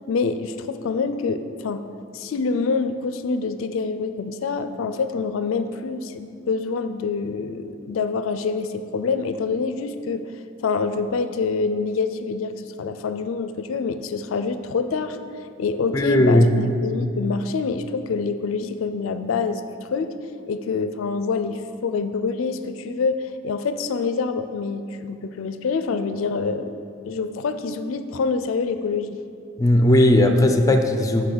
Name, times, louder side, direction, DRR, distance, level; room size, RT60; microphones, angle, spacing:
voice 1, 0.1-1.8 2.1-10.3 10.6-15.2 15.6-19.6 19.9-20.2 20.5-26.7 27.0-29.2, left 4 dB, 75° left, 10 dB, 0.4 m, -26 dB
voice 2, 15.9-16.5 29.6-31.3, left 1 dB, 15° left, 5 dB, 0.5 m, -16 dB
6.1 x 5.5 x 6.7 m, 2.4 s
head